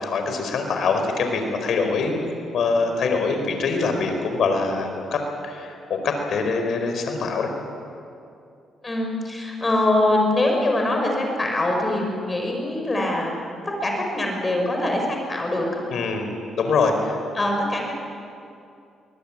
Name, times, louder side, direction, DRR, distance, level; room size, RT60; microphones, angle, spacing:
voice 1, 0.0-2.2 2.5-7.5 15.9-16.3 16.6-17.2, left 4 dB, 65° left, 5 dB, 4.6 m, -24 dB
voice 2, 8.8-13.3 13.8-15.8 17.3-17.9, left 1 dB, 25° left, 1 dB, 5.9 m, -23 dB
22.5 x 19.5 x 8.9 m, 2.5 s
cardioid pair, 90°, 0 cm